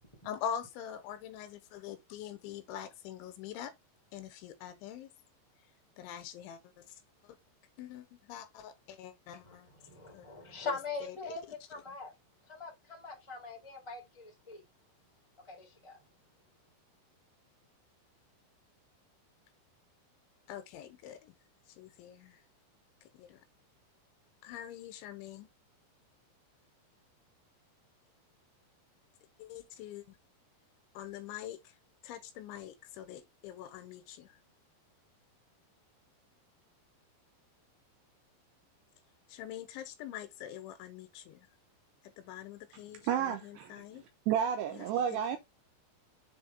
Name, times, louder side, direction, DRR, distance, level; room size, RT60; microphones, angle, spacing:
voice 1, 0.2-3.7 4.1-5.1 6.0-7.0 7.2-7.4 7.8-9.7 10.1-10.3 10.6-11.3 20.5-21.3 21.7-22.4 23.1-23.4 24.4-25.5 29.4-30.2 30.9-31.8 32.0-34.4 39.3-41.5 42.0-44.0 44.7-45.4, left 9 dB, 80° left, 3.4 m, -44 dB
voice 2, 9.4-12.1 12.4-14.6 15.4-16.0, left 4 dB, 20° left, 0.7 m, -42 dB
voice 3, 43.0-43.8 44.3-45.4, right 9 dB, 80° right, 2.5 m, -31 dB
7.3 x 3.7 x 3.7 m
omnidirectional pair, 5.5 m